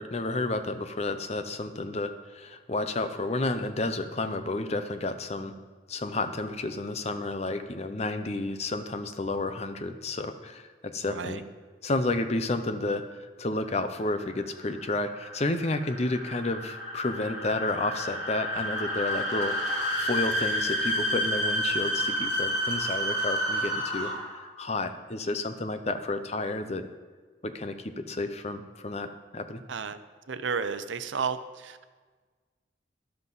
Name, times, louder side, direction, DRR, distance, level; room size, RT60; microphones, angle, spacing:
voice 1, 0.0-5.5 5.9-11.4 11.8-19.6 20.0-26.9 27.4-29.6, left 2 dB, 35° left, 9 dB, 0.7 m, -31 dB
voice 2, 11.1-11.4 29.7-30.0 30.3-31.8, right 5 dB, 85° right, 11 dB, 0.7 m, -32 dB
sound 1, 14.0-24.4, equal, 70° left, 3.1 m, -30 dB
13.0 x 11.5 x 4.0 m, 1.4 s
head